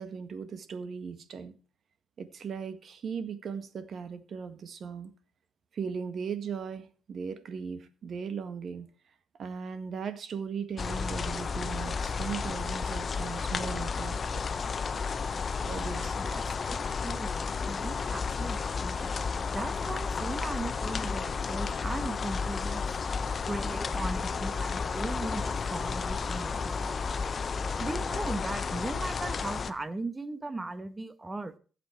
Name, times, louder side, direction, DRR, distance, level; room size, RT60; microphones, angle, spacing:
voice 1, 0.0-1.5 2.2-5.1 5.7-8.9 9.4-14.4 15.7-16.5, right 6 dB, 55° right, 1.7 m, -38 dB
sound 1, 10.8-29.7, left 5 dB, 40° left, 0.9 m, -32 dB
voice 2, 16.2-19.1 19.5-23.0 23.5-27.0 27.8-31.5, right 2 dB, 20° right, 1.2 m, -38 dB
15.5 x 7.7 x 4.6 m
cardioid pair, 90°, 0 cm